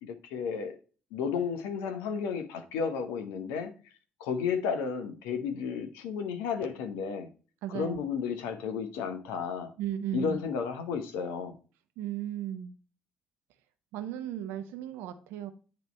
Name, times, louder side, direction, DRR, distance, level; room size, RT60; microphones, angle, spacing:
voice 1, 0.0-0.8 1.1-3.7 4.2-7.3 7.7-9.7 10.1-11.5, left 6 dB, 65° left, 0.9 m, -33 dB
voice 2, 7.6-8.0 9.8-10.4 12.0-12.7 13.9-15.5, right 10 dB, 60° right, 0.8 m, -35 dB
9.2 x 3.2 x 4.2 m
figure-of-eight pair, 45°, 4 cm